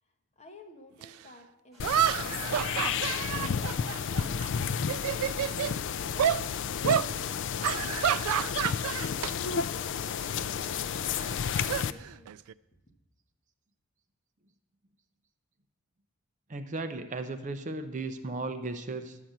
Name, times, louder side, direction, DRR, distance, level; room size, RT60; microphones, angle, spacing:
voice 1, 0.0-6.3 9.9-12.5, left 1 dB, 30° left, 3 dB, 1.2 m, -54 dB
sound 1, 1.0-1.1 1.8-4.5 4.8-5.7 6.2-6.4 6.8-7.1 7.6-9.3 9.6-9.9 11.1-12.5, right 10 dB, 80° right, 0.3 m, -29 dB
sound 2, 1.7-7.8, right 1 dB, ahead, 5.0 m, -58 dB
sound 3, 1.8-11.9, left 7 dB, 55° left, 0.3 m, -32 dB
voice 2, 16.5-19.2, right 3 dB, 35° right, 8 dB, 0.6 m, -35 dB
11.5 x 5.8 x 7.9 m, 0.98 s
head